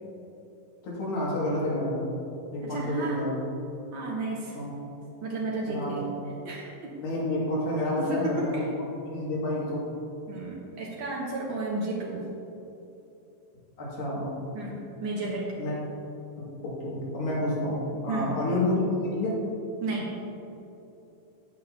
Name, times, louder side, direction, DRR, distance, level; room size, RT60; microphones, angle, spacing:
voice 1, 0.8-2.1 2.5-3.3 4.5-4.7 5.7-6.0 7.0-8.7 9.0-9.9 13.8-14.2 15.6-15.8 16.4-19.4, left 1 dB, 85° left, -6 dB, 4.0 m, -29 dB
voice 2, 2.6-3.2 3.9-4.6 5.2-6.0 6.4-6.9 8.0-8.7 10.3-12.2 14.5-15.5 18.1-18.3 19.8-20.1, right 2 dB, 75° right, -3 dB, 1.1 m, -32 dB
17.5 x 6.3 x 2.9 m, 2.9 s
omnidirectional pair, 3.9 m